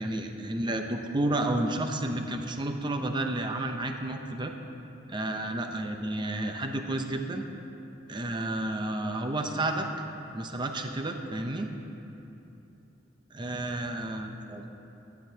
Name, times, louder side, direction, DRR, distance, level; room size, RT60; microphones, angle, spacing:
voice 1, 0.0-4.5 5.1-7.5 8.1-9.9 10.3-11.7 13.3-14.7, right 1 dB, 25° right, 5 dB, 0.6 m, -31 dB
15.5 x 10.5 x 2.8 m, 2.9 s
head